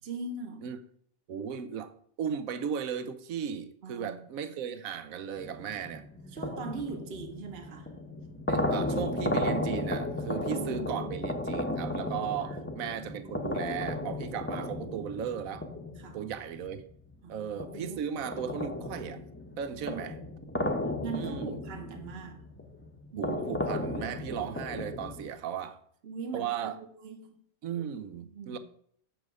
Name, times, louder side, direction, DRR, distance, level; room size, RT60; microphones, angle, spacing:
voice 1, 0.0-0.7 3.8-4.2 6.3-7.9 10.3-11.1 16.0-16.2 17.2-18.0 19.8-20.0 21.0-22.4 23.1-23.4 26.0-27.4 28.2-28.6, right 4 dB, 45° right, 1.2 m, -41 dB
voice 2, 1.3-6.0 8.5-15.6 16.1-16.8 17.3-19.2 19.6-20.1 21.1-21.6 23.1-25.8 26.3-26.8 27.6-28.6, right 8 dB, 70° right, 1.1 m, -36 dB
sound 1, 5.4-17.1 17.6-25.3, left 1 dB, 10° left, 0.8 m, -35 dB
7.8 x 6.3 x 4.8 m
omnidirectional pair, 1.5 m